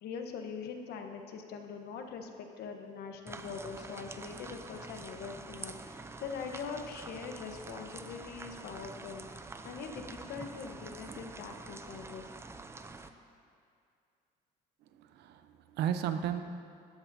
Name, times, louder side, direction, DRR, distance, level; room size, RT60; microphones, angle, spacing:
voice 1, 0.0-12.3, left 5 dB, 75° left, 4 dB, 1.0 m, -43 dB
sound 1, 3.3-13.1, right 3 dB, 15° right, 0.5 m, -46 dB
voice 2, 15.0-16.4, right 9 dB, 80° right, 8 dB, 0.7 m, -34 dB
13.0 x 11.0 x 2.7 m, 2.3 s
cardioid pair, 110°, 17 cm